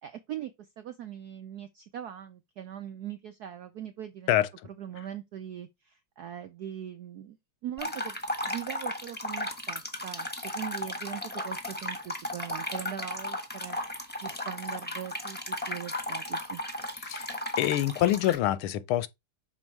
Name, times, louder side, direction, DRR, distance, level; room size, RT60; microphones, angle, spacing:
voice 1, 0.0-4.3 4.8-7.4 7.6-8.2 8.4-13.8 14.2-16.6, right 10 dB, 75° right, 0.8 m, -41 dB
sound 1, 7.8-18.4, left 1 dB, 5° left, 0.9 m, -35 dB
voice 2, 17.0-19.1, left 13 dB, 80° left, 1.5 m, -26 dB
6.2 x 4.4 x 4.5 m
omnidirectional pair, 2.4 m